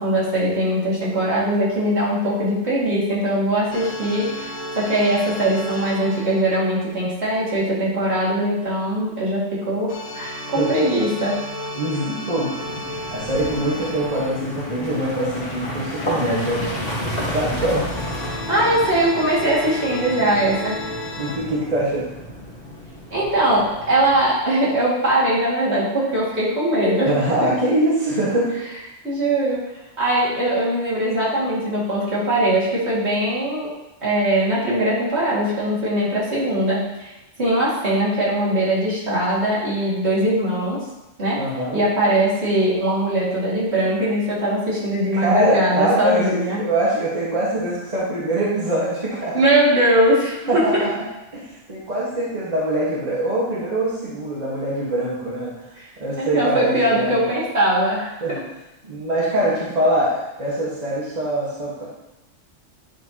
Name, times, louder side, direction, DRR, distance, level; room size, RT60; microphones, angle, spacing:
voice 1, 0.0-11.4 18.3-20.8 23.1-27.1 27.4-27.5 29.0-29.6 30.0-33.7 34.0-37.1 37.4-40.8 41.2-41.4 41.7-46.6 49.3-50.6 56.2-58.1, right 1 dB, 60° right, -8 dB, 2.5 m, -21 dB
sound 1, 3.7-7.5 9.9-15.3 17.9-21.4, left 1 dB, 80° left, 1.5 m, -33 dB
voice 2, 10.6-10.9 11.7-16.9 17.2-17.9 21.2-22.1 27.1-28.5 41.4-41.8 45.1-49.3 50.5-51.0 51.3-57.2 58.2-58.4 58.8-62.0, right 1 dB, 30° right, -8 dB, 1.6 m, -23 dB
sound 2, 12.5-24.4, equal, 50° left, 1.9 m, -32 dB
9.3 x 4.5 x 2.9 m, 0.97 s
omnidirectional pair, 1.3 m